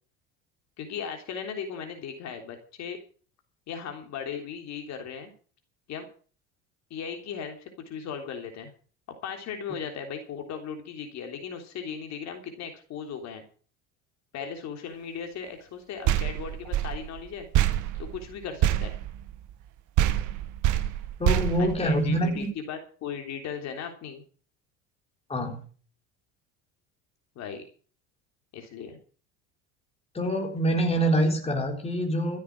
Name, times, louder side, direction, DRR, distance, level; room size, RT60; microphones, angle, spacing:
voice 1, 0.8-3.0 3.7-5.3 5.9-6.1 6.9-8.7 9.1-13.4 14.3-17.5 17.9-18.9 21.6-24.2 27.4-27.6 28.5-29.0, left 7 dB, 50° left, 4 dB, 3.4 m, -37 dB
sound 1, 16.0-19.7 20.0-22.4, right 12 dB, 60° right, 1.7 m, -26 dB
voice 2, 21.2-22.5 25.3-25.7 30.1-32.4, right 1 dB, 15° left, 2 dB, 4.0 m, -25 dB
14.0 x 8.2 x 7.4 m, 0.42 s
supercardioid pair, 110°, 34 cm